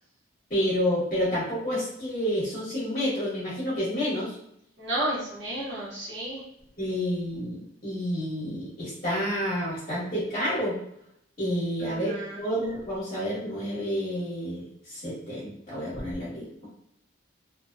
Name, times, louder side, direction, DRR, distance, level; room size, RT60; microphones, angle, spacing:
voice 1, 0.5-4.3 6.8-10.8 11.4-12.1 12.4-16.7, equal, 30° left, -9 dB, 1.0 m, -29 dB
voice 2, 4.8-6.4 11.8-12.4, right 1 dB, 55° right, -7 dB, 0.8 m, -32 dB
2.6 x 2.0 x 2.4 m, 0.73 s
head